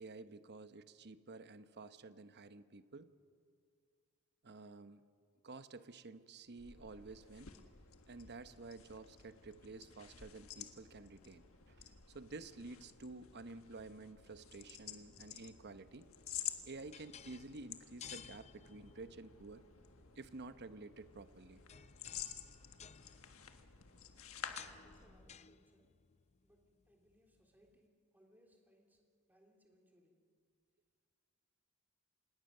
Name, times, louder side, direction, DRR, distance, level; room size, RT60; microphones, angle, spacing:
voice 1, 0.0-3.1 4.4-5.0 5.4-7.5 8.1-16.1 16.7-19.6 20.2-21.6, right 3 dB, 50° right, 11 dB, 1.0 m, -51 dB
sound 1, 6.5-25.4, left 9 dB, 70° left, 1.5 m, -51 dB
sound 2, 16.4-27.7, left 8 dB, 30° left, 0.5 m, -58 dB
voice 2, 24.8-26.0 26.4-30.2, equal, 10° right, 1 dB, 3.5 m, -70 dB
26.5 x 20.0 x 6.7 m, 2.1 s
head